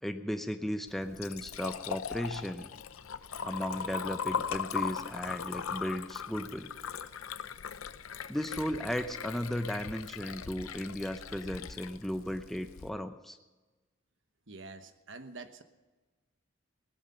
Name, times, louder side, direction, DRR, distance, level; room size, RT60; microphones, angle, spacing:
voice 1, 0.0-2.7 3.4-6.7 8.3-13.4, equal, ahead, 7 dB, 0.6 m, -35 dB
Liquid, 0.9-12.9, left 7 dB, 85° left, 0.7 m, -39 dB
voice 2, 14.5-15.6, right 3 dB, 60° right, 9 dB, 1.1 m, -46 dB
17.5 x 12.0 x 5.5 m, 1.2 s
head